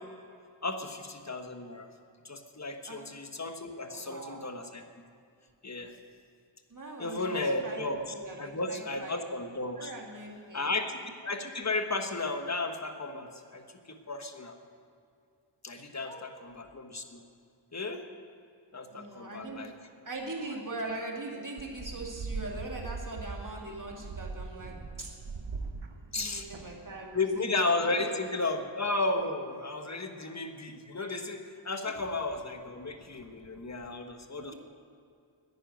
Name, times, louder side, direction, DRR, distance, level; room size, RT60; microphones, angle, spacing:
voice 1, 0.6-1.9 2.2-4.8 5.6-5.9 7.0-9.9 10.5-14.5 15.6-17.2 17.7-18.0 18.7-19.7 26.1-26.5 27.1-34.5, left 2 dB, 35° left, 6 dB, 1.3 m, -34 dB
voice 2, 3.9-4.4 6.7-7.8 8.1-9.2 9.8-10.7 15.7-16.2 18.9-19.7 20.0-25.1 26.1-27.5 27.8-28.1 28.4-28.5 34.4-34.5, right 2 dB, 40° right, -1 dB, 2.5 m, -41 dB
sound 1, 21.6-27.1, right 4 dB, 75° right, 1.1 m, -40 dB
10.5 x 10.0 x 9.2 m, 2.4 s
wide cardioid pair, 65°, 46 cm